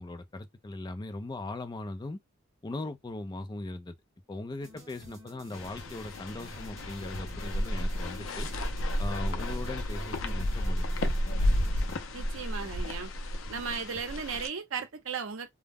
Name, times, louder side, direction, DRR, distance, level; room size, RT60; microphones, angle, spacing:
voice 1, 0.0-2.2 2.6-4.0 4.3-8.5 9.0-11.6, left 2 dB, 20° left, 0.4 m, -39 dB
sound 1, 4.6-12.0, equal, 15° right, 0.9 m, -51 dB
sound 2, 5.5-14.5, left 1 dB, 70° left, 0.5 m, -32 dB
voice 2, 12.1-13.1 13.5-15.5, right 6 dB, 75° right, 0.6 m, -36 dB
2.2 x 2.0 x 3.4 m
head